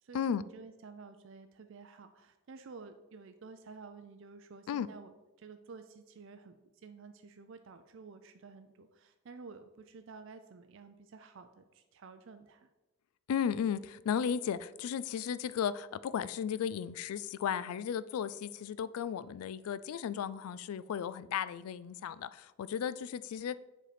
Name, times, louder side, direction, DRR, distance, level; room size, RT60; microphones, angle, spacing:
voice 1, 0.0-12.7, right 4 dB, 60° right, 0.4 m, -51 dB
voice 2, 13.3-23.6, left 8 dB, 80° left, 0.3 m, -35 dB
7.5 x 4.3 x 5.0 m
head